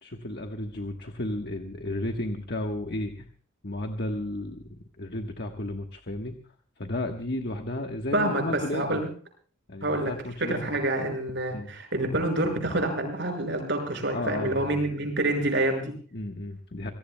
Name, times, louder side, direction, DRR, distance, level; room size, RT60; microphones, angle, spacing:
voice 1, 0.0-3.3 3.6-6.4 6.8-9.0 9.7-10.6 11.5-11.7 14.1-14.8 16.1-16.9, left 1 dB, 55° left, 4 dB, 1.3 m, -33 dB
voice 2, 8.1-9.1 9.8-10.1 10.4-15.9, right 1 dB, 60° right, 4 dB, 5.8 m, -27 dB
26.5 x 17.5 x 2.2 m, 0.43 s
head